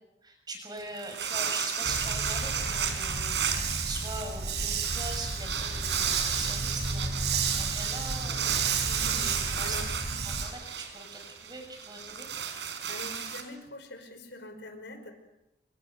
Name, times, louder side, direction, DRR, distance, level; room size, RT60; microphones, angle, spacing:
voice 1, 0.2-3.6 3.9-8.6 9.0-9.9 10.2-12.3, right 2 dB, 25° right, 4 dB, 6.9 m, -41 dB
sound 1, 0.8-13.4, right 7 dB, 90° right, 4.4 m, -34 dB
Dog, 1.8-10.4, right 4 dB, 70° right, 5.3 m, -32 dB
voice 2, 8.8-9.9 12.9-15.1, left 1 dB, 90° left, 7 dB, 5.2 m, -44 dB
27.5 x 25.5 x 6.8 m, 0.88 s
head